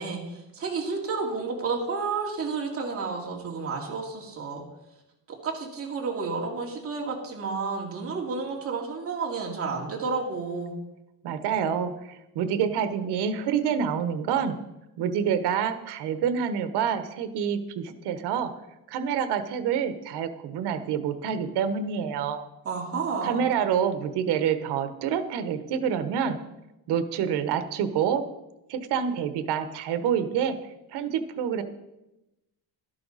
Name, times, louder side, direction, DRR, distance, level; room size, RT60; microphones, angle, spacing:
voice 1, 0.0-4.6 5.4-10.7 22.6-23.4, right 4 dB, 35° right, -1 dB, 2.6 m, -31 dB
voice 2, 11.2-14.6 15.0-18.5 18.9-22.4 23.2-26.4 26.9-28.2 28.7-30.6 30.9-31.6, right 8 dB, 90° right, 10 dB, 1.2 m, -27 dB
12.5 x 11.5 x 4.1 m, 0.95 s
cardioid pair, 165°, 39 cm